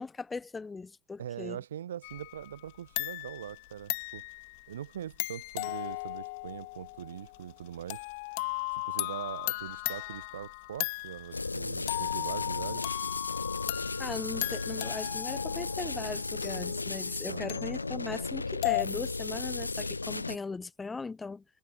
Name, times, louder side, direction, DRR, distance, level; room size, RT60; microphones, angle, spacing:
voice 1, 0.0-1.6 14.0-21.4, left 4 dB, 15° left, 1.4 m, -39 dB
voice 2, 1.2-4.3 4.7-8.1 8.7-12.9 17.3-17.6, right 10 dB, 70° right, 1.3 m, -42 dB
sound 1, 2.0-2.7 3.0-11.5 11.9-18.8, left 26 dB, 60° left, 2.3 m, -37 dB
sound 2, 11.3-20.4, left 3 dB, 85° left, 0.4 m, -35 dB
figure-of-eight pair, 70°, 0 cm